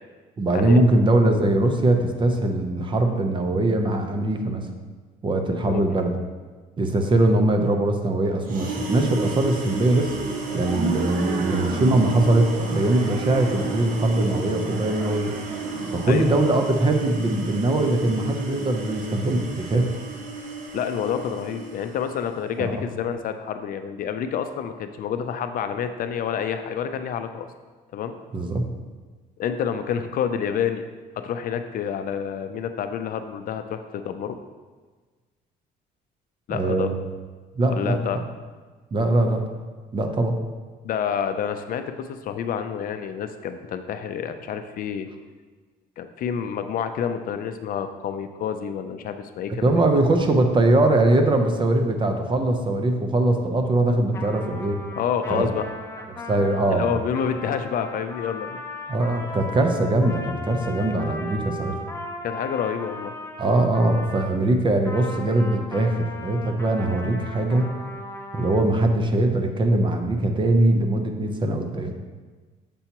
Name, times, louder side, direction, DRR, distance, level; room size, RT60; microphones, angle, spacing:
voice 1, 0.4-4.7 5.2-6.2 6.8-10.1 10.5-15.3 15.9-19.9 22.6-22.9 28.3-28.7 36.5-37.0 37.6-38.0 38.9-39.5 39.9-40.4 49.5-54.8 55.3-55.5 56.3-57.0 58.9-61.8 63.4-67.7 68.3-71.9, right 2 dB, 30° right, 5 dB, 0.7 m, -21 dB
sound 1, 8.4-22.4, right 3 dB, 55° right, 1.1 m, -34 dB
sound 2, 9.9-16.8, right 4 dB, 75° right, 0.8 m, -32 dB
voice 2, 20.7-27.5 27.9-28.1 29.4-30.8 31.2-34.4 36.5-36.9 37.7-38.2 40.8-45.1 46.0-49.8 55.0-55.7 56.7-58.6 62.2-63.1, left 8 dB, 55° left, 8 dB, 0.5 m, -28 dB
Trumpet, 54.1-64.3 64.8-68.6, left 2 dB, 15° left, 0.7 m, -37 dB
6.9 x 5.6 x 2.9 m, 1.4 s
cardioid pair, 110°, 17 cm